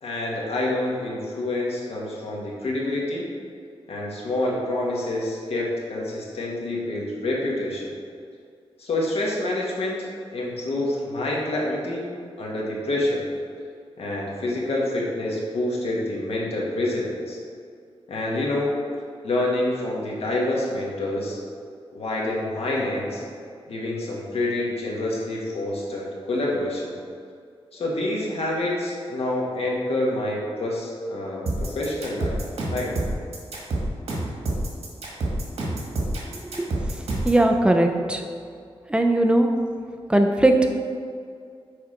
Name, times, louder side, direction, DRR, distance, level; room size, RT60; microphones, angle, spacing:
voice 1, 0.0-3.3 3.9-7.9 8.8-12.1 12.4-13.3 14.0-17.4 18.1-18.7 19.2-21.4 21.9-23.2 23.7-26.9 27.7-32.4 32.7-32.9, left 1 dB, 75° left, -3 dB, 1.5 m, -27 dB
sound 1, 31.5-37.4, right 1 dB, 90° right, 1.6 m, -27 dB
voice 2, 37.2-38.2 38.9-39.6 40.1-40.7, right 1 dB, 10° right, 3 dB, 0.5 m, -19 dB
6.5 x 4.7 x 5.0 m, 2.3 s
wide cardioid pair, 145°, 10 cm